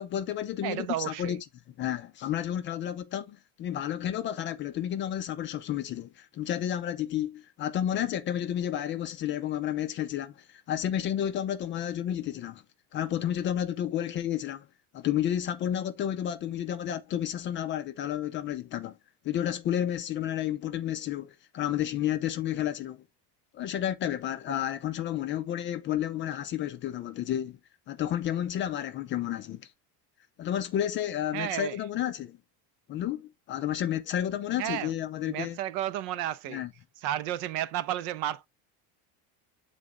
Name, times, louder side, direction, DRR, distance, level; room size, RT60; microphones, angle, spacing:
voice 1, 0.0-1.4 1.8-12.6 12.9-14.7 14.9-18.9 19.2-23.0 23.5-27.6 27.9-29.7 30.4-32.4 32.9-35.6 36.5-36.7, left 11 dB, 30° left, 0.4 m, -31 dB
voice 2, 0.6-1.4 31.3-31.8 34.6-34.9 35.3-36.7 37.0-38.5, right 12 dB, 60° right, 0.7 m, -32 dB
7.5 x 3.9 x 3.5 m
cardioid pair, 165°, 42 cm